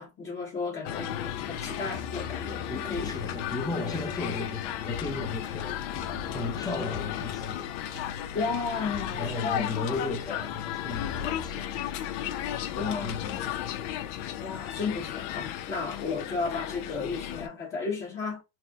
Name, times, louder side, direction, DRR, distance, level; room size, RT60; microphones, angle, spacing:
voice 1, 0.0-3.1 8.3-9.7 12.7-13.2 14.4-18.4, left 4 dB, 30° left, 1.0 m, -33 dB
sound 1, 0.9-17.5, left 11 dB, 60° left, 0.6 m, -35 dB
sound 2, 1.2-11.5, left 4 dB, 80° left, 1.5 m, -43 dB
voice 2, 2.7-5.8 6.3-7.8 9.2-12.0 12.8-13.7, left 3 dB, 10° left, 0.5 m, -35 dB
4.3 x 2.0 x 2.3 m
supercardioid pair, 120°, 40 cm